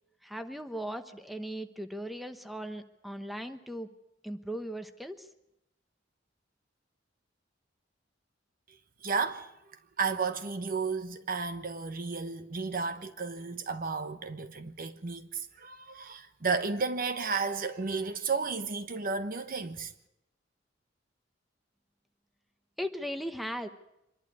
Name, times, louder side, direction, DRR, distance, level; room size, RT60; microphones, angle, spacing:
voice 1, 0.2-3.9 4.2-5.3 22.8-23.7, equal, ahead, 1.0 m, -38 dB
voice 2, 9.0-9.5 10.0-19.9, right 4 dB, 50° right, 1.1 m, -33 dB
25.0 x 11.5 x 9.6 m
head